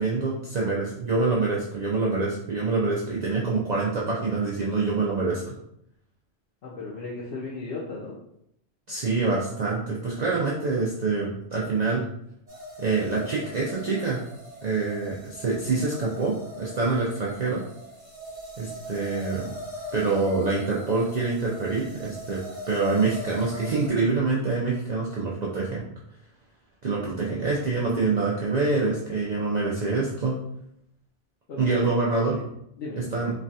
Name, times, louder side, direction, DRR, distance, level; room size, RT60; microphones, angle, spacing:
voice 1, 0.0-5.6 8.9-12.0 12.8-14.2 14.6-17.6 18.6-19.5 19.9-22.4 22.7-25.8 26.8-30.4 31.6-32.4 33.1-33.3, right 3 dB, 55° right, -4 dB, 0.5 m, -26 dB
voice 2, 6.6-8.2 31.5-31.9 32.8-33.1, left 3 dB, 65° left, -5 dB, 0.7 m, -35 dB
sound 1, 12.5-23.9, left 1 dB, 35° right, 0.9 m, -41 dB
3.2 x 2.2 x 2.6 m, 0.75 s
omnidirectional pair, 1.2 m